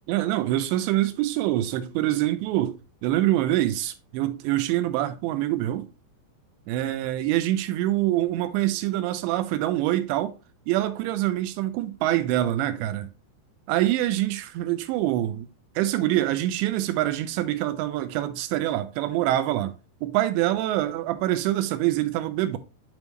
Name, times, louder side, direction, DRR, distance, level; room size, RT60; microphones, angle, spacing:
voice 1, 0.1-5.9 6.7-10.3 10.7-13.1 13.7-15.5 15.8-19.7 20.0-22.6, right 14 dB, 85° right, 2.8 m, -25 dB
9.3 x 3.5 x 3.0 m
omnidirectional pair, 5.1 m